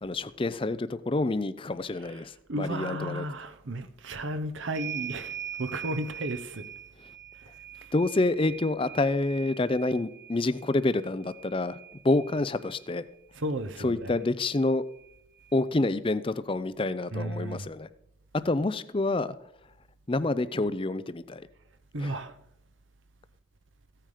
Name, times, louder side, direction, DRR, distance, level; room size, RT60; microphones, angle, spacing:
voice 1, 0.0-3.3 7.9-11.8 12.0-13.0 13.8-14.8 15.5-17.9 18.4-19.3 20.1-21.4 22.0-22.2, left 2 dB, 25° left, 0.5 m, -28 dB
voice 2, 2.0-6.7 13.3-14.2 17.1-17.7 21.9-22.3, right 1 dB, 70° right, 0.9 m, -34 dB
sound 1, 4.7-12.9 14.1-14.2 14.5-15.6, right 10 dB, 45° right, 1.5 m, -43 dB
15.0 x 9.1 x 5.0 m
head